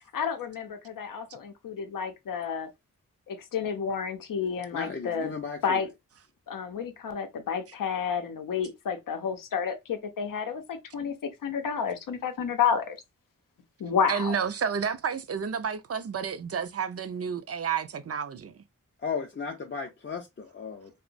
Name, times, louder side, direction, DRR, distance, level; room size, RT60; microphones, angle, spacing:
voice 1, 0.1-2.7 3.3-5.3 5.6-5.9 6.5-11.1 11.4-13.0 13.8-14.4, left 7 dB, 85° left, 0.6 m, -30 dB
voice 2, 4.7-5.8 19.0-20.9, left 5 dB, 35° left, 0.5 m, -35 dB
voice 3, 14.1-18.4, right 6 dB, 50° right, 0.5 m, -30 dB
2.8 x 2.1 x 2.5 m
cardioid pair, 50°, 32 cm